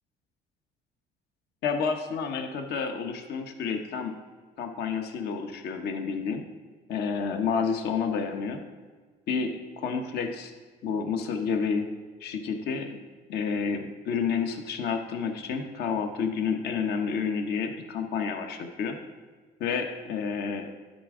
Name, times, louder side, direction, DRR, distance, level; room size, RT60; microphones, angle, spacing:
voice 1, 1.6-4.1 4.6-6.4 6.9-8.6 9.3-10.5 10.8-11.9 12.2-13.0 13.3-19.0 19.6-20.7, left 6 dB, 75° left, 5 dB, 1.0 m, -30 dB
11.5 x 5.2 x 3.7 m, 1.4 s
cardioid pair, 110°, 17 cm